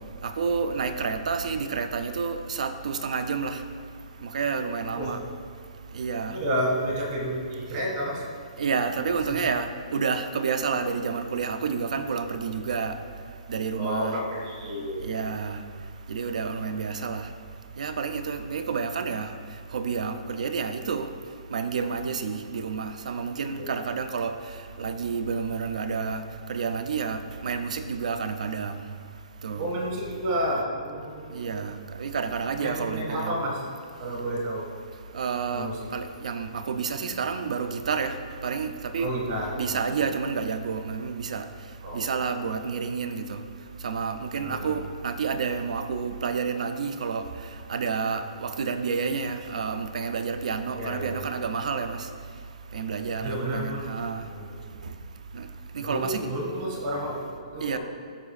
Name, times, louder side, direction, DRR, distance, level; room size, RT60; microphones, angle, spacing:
voice 1, 0.2-3.6 4.2-5.2 5.9-6.3 8.6-12.9 13.5-14.2 15.0-15.6 16.1-17.3 17.8-19.3 19.7-21.1 21.5-24.3 24.8-26.2 26.5-28.8 29.4-29.7 31.3-33.3 35.1-38.1 38.4-39.1 39.6-41.5 41.9-43.4 43.8-47.2 47.7-52.0 52.7-54.2 55.3-55.5 55.7-56.3 57.6-57.8, right 5 dB, 70° right, 9 dB, 0.5 m, -29 dB
voice 2, 6.3-8.2 13.8-15.2 23.5-23.8 29.5-31.5 32.6-33.7 34.0-34.6 35.5-35.7 39.0-39.8 41.8-42.2 44.4-44.8 50.7-51.2 53.2-53.9 54.2-54.5 55.8-57.8, equal, 35° right, -2 dB, 1.7 m, -31 dB
13.0 x 4.9 x 2.4 m, 2.1 s
hypercardioid pair, 170°, 4 cm